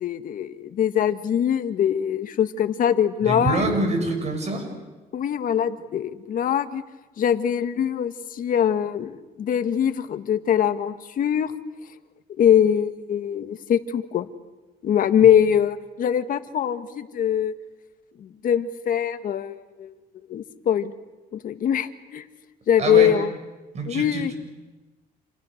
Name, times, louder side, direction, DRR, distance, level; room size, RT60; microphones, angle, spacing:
voice 1, 0.0-3.6 5.1-6.8 7.2-11.5 12.4-14.3 14.8-17.5 18.2-19.9 20.3-20.9 21.3-22.2 22.7-23.3 23.9-24.3, left 9 dB, 55° left, 10 dB, 1.5 m, -22 dB
voice 2, 3.2-4.7 22.8-23.1 23.7-24.3, right 2 dB, 40° right, 4 dB, 7.2 m, -25 dB
29.5 x 28.0 x 6.6 m, 1.2 s
cardioid pair, 110°, 17 cm